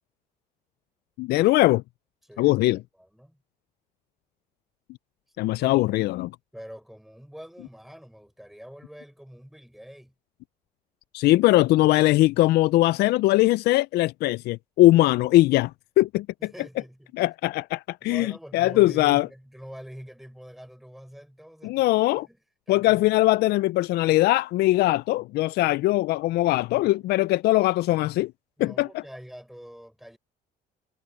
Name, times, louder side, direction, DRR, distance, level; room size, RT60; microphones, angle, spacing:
voice 1, 1.2-1.8 2.4-2.8 5.4-6.3 11.1-16.5 17.2-19.3 21.6-22.3 22.7-28.3 28.6-29.0, left 17 dB, 70° left, 0.4 m, -21 dB
voice 2, 2.2-3.4 5.3-5.9 6.5-10.1 16.4-17.1 18.0-22.4 22.7-23.2 28.6-30.2, equal, ahead, 5.1 m, -45 dB
cardioid pair, 110°, 17 cm